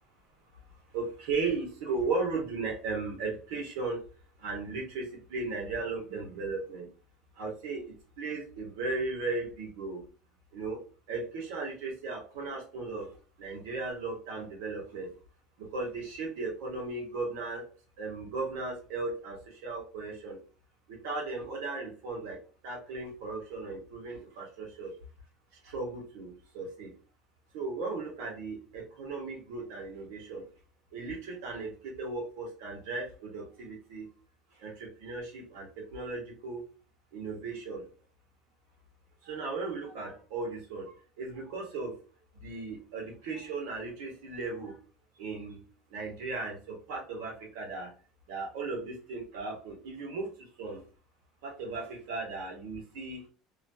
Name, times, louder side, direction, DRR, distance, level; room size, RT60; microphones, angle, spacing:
voice 1, 0.9-4.0 4.4-6.9 7.3-10.0 10.5-10.8 11.1-13.1 13.4-15.1 15.6-17.6 18.0-20.4 20.9-22.4 22.6-24.9 25.6-26.9 27.5-30.4 30.9-34.1 34.6-36.6 37.1-37.8 39.2-41.9 42.4-44.8 45.2-45.6 45.9-47.9 48.3-50.3 50.6-50.8 51.4-53.3, right 3 dB, 85° right, -1 dB, 1.4 m, -36 dB
3.0 x 2.3 x 2.7 m, 0.38 s
cardioid pair, 140°, 0 cm